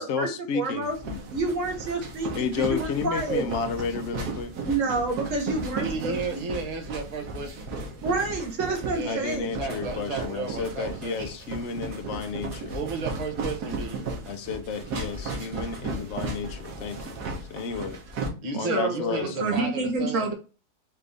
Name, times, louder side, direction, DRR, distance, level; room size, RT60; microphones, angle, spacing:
voice 1, 0.0-1.2 2.3-4.5 9.0-12.8 14.3-17.2 17.5-18.0 18.5-19.7, left 5 dB, 60° left, 0.8 m, -32 dB
voice 2, 0.5-1.0 1.3-3.6 4.6-6.4 8.0-9.5 18.7-20.3, right 3 dB, 55° right, 1.5 m, -28 dB
sound 1, 0.8-18.3, right 3 dB, 85° right, 1.5 m, -35 dB
voice 3, 5.7-7.7 8.9-11.3 12.7-14.0 18.4-20.3, right 4 dB, 40° right, 0.6 m, -33 dB
4.5 x 2.6 x 3.3 m
omnidirectional pair, 1.7 m